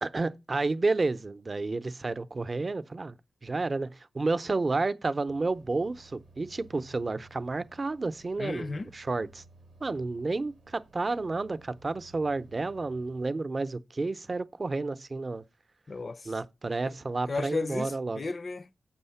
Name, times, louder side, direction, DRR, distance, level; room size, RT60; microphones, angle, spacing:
voice 1, 0.0-3.2 3.4-9.4 9.8-15.4 16.3-18.2, right 3 dB, 40° right, 0.6 m, -31 dB
sound 1, 5.3-13.3, right 2 dB, 75° right, 0.7 m, -57 dB
voice 2, 8.4-8.9 15.9-16.3 16.9-17.0 17.3-18.7, left 3 dB, 50° left, 0.5 m, -34 dB
7.4 x 6.3 x 5.6 m
wide cardioid pair, 100°, 0 cm